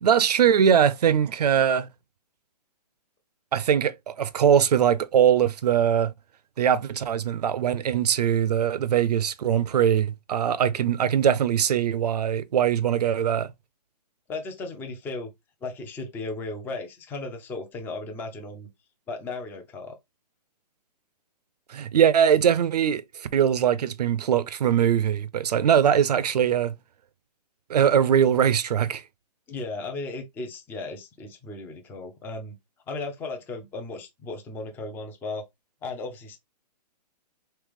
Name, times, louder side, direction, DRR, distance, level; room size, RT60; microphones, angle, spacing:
voice 1, 0.0-1.9 3.5-6.1 6.6-13.5 21.7-26.7 27.7-29.0, right 9 dB, 70° right, 0.6 m, -21 dB
voice 2, 14.3-15.3 15.6-18.7 19.1-20.0 29.5-32.6 32.9-35.4 35.8-36.4, left 3 dB, 10° left, 0.5 m, -35 dB
3.3 x 3.0 x 3.5 m
hypercardioid pair, 140°, 21 cm